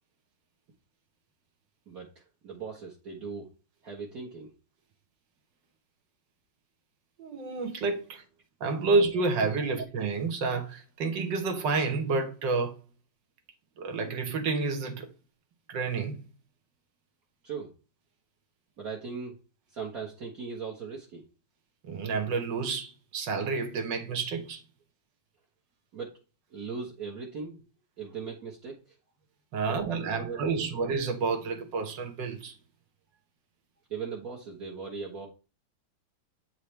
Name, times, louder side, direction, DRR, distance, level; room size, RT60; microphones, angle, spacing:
voice 1, 1.9-3.5 3.8-4.5 17.4-17.7 18.8-19.4 19.7-21.3 25.9-26.2 26.5-27.6 28.0-29.0 29.7-30.8 33.1-33.2 33.9-35.3, right 5 dB, 50° right, 1.7 m, -39 dB
voice 2, 7.2-8.2 8.6-12.8 13.8-15.1 15.7-16.2 21.8-24.6 29.5-32.5, right 4 dB, 70° right, 1.8 m, -29 dB
8.4 x 4.7 x 3.3 m
omnidirectional pair, 2.1 m